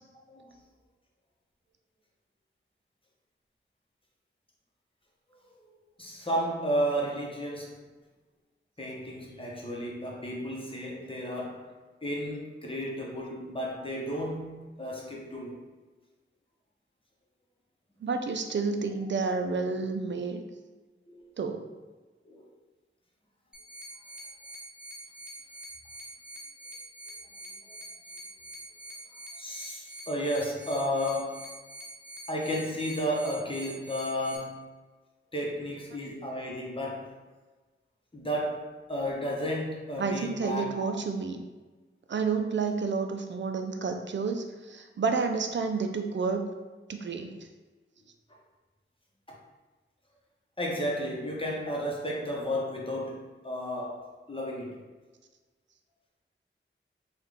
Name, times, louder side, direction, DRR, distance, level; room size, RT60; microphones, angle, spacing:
voice 1, 5.7-7.9 8.8-11.7 12.0-15.6 21.1-21.2 22.3-22.5 27.7-27.8 29.4-31.5 32.3-34.6 35.3-37.2 38.1-41.0 49.3-49.4 50.6-54.8, equal, 25° left, -3 dB, 0.8 m, -33 dB
voice 2, 18.0-20.4 21.4-21.7 40.0-41.4 42.1-46.5 46.9-47.3, right 4 dB, 60° right, 6 dB, 0.4 m, -30 dB
sound 1, 23.5-34.4, right 1 dB, 5° right, 0.6 m, -45 dB
3.6 x 2.3 x 3.4 m, 1.3 s
wide cardioid pair, 70°, 21 cm